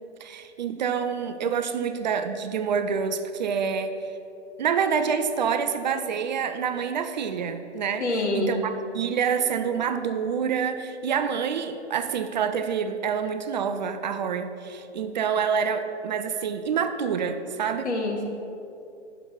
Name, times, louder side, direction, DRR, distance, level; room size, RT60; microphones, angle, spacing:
voice 1, 0.2-4.1 4.6-8.0 8.3-17.9, right 6 dB, 40° right, 9 dB, 0.5 m, -27 dB
voice 2, 8.0-8.6 17.8-18.2, left 2 dB, 75° left, 1 dB, 1.6 m, -26 dB
6.3 x 6.0 x 6.9 m, 2.7 s
hypercardioid pair, 140°, 35 cm